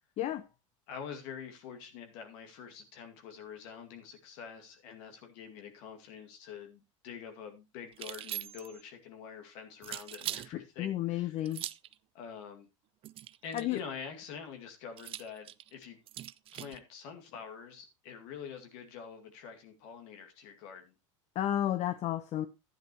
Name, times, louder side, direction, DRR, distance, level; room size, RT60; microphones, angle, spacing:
voice 1, 0.2-0.5 10.5-11.6 13.5-13.8 21.3-22.5, left 12 dB, 40° left, 0.7 m, -32 dB
voice 2, 0.9-11.4 12.1-12.7 13.4-16.0 16.5-21.0, left 7 dB, 60° left, 2.2 m, -46 dB
sound 1, 7.9-8.8 9.8-10.5 11.4-11.9 13.0-13.8 15.0-16.8, right 13 dB, 35° right, 0.4 m, -41 dB
12.0 x 9.8 x 3.0 m
hypercardioid pair, 105°, 17 cm